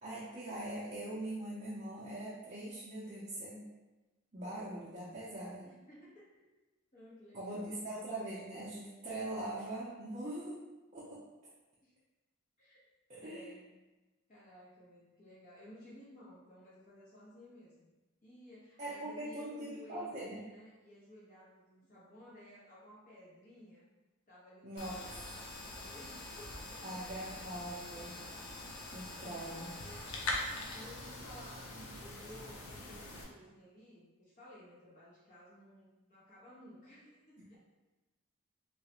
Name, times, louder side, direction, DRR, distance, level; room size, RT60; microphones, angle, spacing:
voice 1, 0.0-3.7 4.3-5.7 7.3-10.6 10.9-11.2 13.1-13.5 18.8-20.4 24.6-25.1 26.8-28.1 28.9-29.7 31.7-31.8, right 1 dB, 35° right, -8 dB, 0.5 m, -42 dB
voice 2, 5.6-6.5 6.9-8.1 11.8-11.9 12.6-12.9 13.2-13.7 14.3-17.9 18.2-23.9 24.3-27.2 27.9-28.3 29.0-30.4 30.7-37.6, left 1 dB, 35° left, -8 dB, 0.9 m, -56 dB
sound 1, 24.8-33.2, left 2 dB, 85° left, 0.6 m, -43 dB
3.1 x 2.4 x 2.9 m, 1.1 s
head